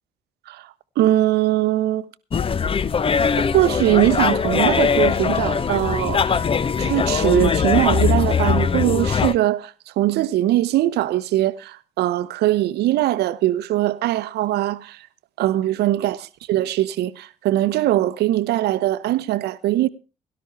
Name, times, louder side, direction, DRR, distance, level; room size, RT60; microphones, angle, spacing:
voice 1, 1.0-2.1 3.5-6.4 6.8-15.0 15.4-19.9, right 14 dB, 60° right, 0.8 m, -21 dB
sound 1, 2.3-9.3, left 6 dB, 30° left, 0.6 m, -21 dB
18.0 x 12.0 x 3.3 m
figure-of-eight pair, 40°, 19 cm